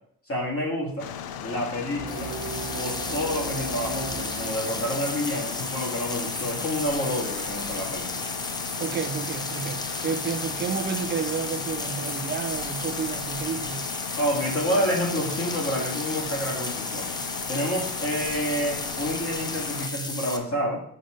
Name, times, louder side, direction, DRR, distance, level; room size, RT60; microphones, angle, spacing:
voice 1, 0.3-1.1 1.4-2.3 2.7-8.3 14.2-17.1 17.5-20.8, equal, 40° left, 2.1 m, -29 dB
sound 1, 1.0-19.9, left 8 dB, 90° left, 0.6 m, -36 dB
sound 2, 1.9-7.0, right 3 dB, 70° right, 1.2 m, -38 dB
sound 3, 2.1-20.4, left 2 dB, 10° left, 0.6 m, -34 dB
voice 2, 8.8-13.9, right 6 dB, 30° right, 0.5 m, -31 dB
5.6 x 5.0 x 5.0 m
wide cardioid pair, 150°, 35 cm